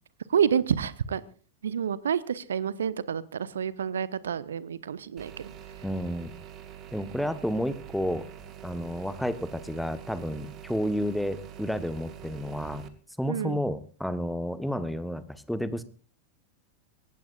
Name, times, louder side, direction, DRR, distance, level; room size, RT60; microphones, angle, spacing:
voice 1, 0.3-1.2 1.6-5.5 13.3-13.6, right 8 dB, 65° right, 18 dB, 1.0 m, -28 dB
sound 1, 5.2-12.9, right 10 dB, 35° right, 2.0 m, -45 dB
voice 2, 5.8-6.3 6.9-8.3 8.6-12.9 13.2-15.8, equal, ahead, 13 dB, 1.2 m, -31 dB
23.0 x 18.0 x 2.5 m, 0.39 s
figure-of-eight pair, 90°, 0 cm